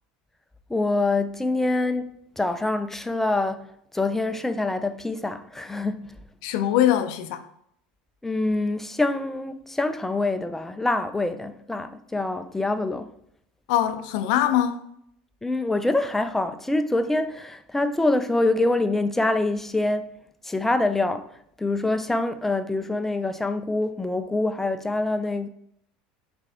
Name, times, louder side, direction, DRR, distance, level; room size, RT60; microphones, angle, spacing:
voice 1, 0.7-3.7 3.9-6.1 8.2-13.1 15.4-20.1 20.4-21.3 21.6-25.5, left 2 dB, 10° left, 0.3 m, -25 dB
voice 2, 6.4-7.4 13.7-14.8, left 11 dB, 70° left, 0.4 m, -22 dB
4.2 x 2.5 x 3.5 m
hypercardioid pair, 95°, 4 cm